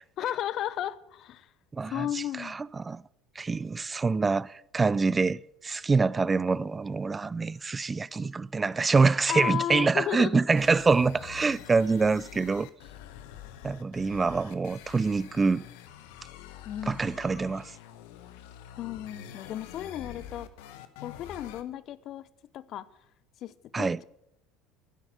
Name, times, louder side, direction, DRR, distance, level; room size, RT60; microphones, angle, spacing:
voice 1, 0.2-1.5 1.8-2.6 9.3-10.4 16.6-17.0 18.8-20.5 21.0-22.3 22.5-22.9 23.4-24.0, left 11 dB, 50° left, 0.7 m, -34 dB
voice 2, 1.7-3.0 3.4-12.7 13.6-15.7 16.9-17.7 23.7-24.0, right 4 dB, 20° right, 0.4 m, -26 dB
sound 1, 10.6-21.6, left 10 dB, 70° left, 1.0 m, -46 dB
12.0 x 9.8 x 8.0 m
hypercardioid pair, 70°, 0 cm